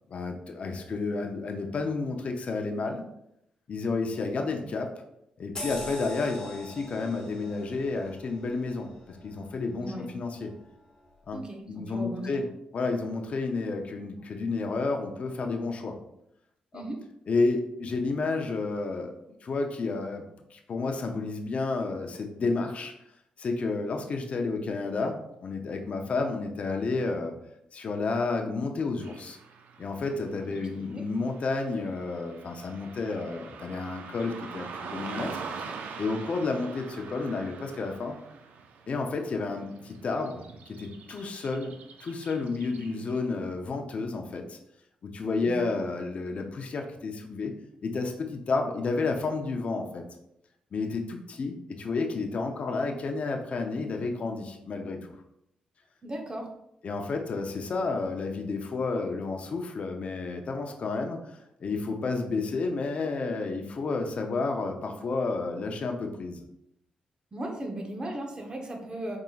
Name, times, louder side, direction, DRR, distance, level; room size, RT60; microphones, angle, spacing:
voice 1, 0.1-3.0 3.7-4.9 5.4-10.5 11.3-11.4 11.7-12.4 12.7-16.0 16.7-16.8 17.3-19.1 19.4-20.2 20.5-22.9 23.4-27.4 27.7-29.4 29.8-35.4 36.0-38.2 38.9-41.7 42.0-44.6 45.0-47.5 47.8-50.0 50.7-55.1 56.8-66.4, left 3 dB, 50° left, 4 dB, 0.5 m, -31 dB
sound 1, 5.6-10.5 10.9-11.1, left 1 dB, 25° left, 1.2 m, -43 dB
voice 2, 9.8-10.1 11.3-12.4 16.7-17.0 30.4-31.0 45.5-45.6 56.0-56.5 67.3-69.2, right 1 dB, 30° right, 2 dB, 0.9 m, -37 dB
Car passing by / Traffic noise roadway noise, 29.0-43.3, right 5 dB, 85° right, 0.4 m, -44 dB
3.9 x 3.6 x 2.3 m, 0.79 s
cardioid pair, 80°, 3 cm